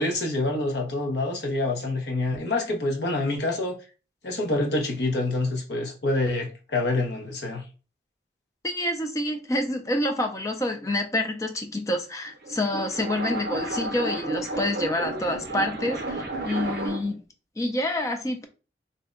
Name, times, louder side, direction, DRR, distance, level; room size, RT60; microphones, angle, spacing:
voice 1, 0.0-3.8 4.2-7.6, left 2 dB, 65° left, 0.7 m, -26 dB
voice 2, 8.6-17.2 17.6-18.5, left 1 dB, 15° left, 0.3 m, -27 dB
sound 1, 12.3-17.2, right 2 dB, 55° right, 0.6 m, -32 dB
2.6 x 2.1 x 3.7 m
head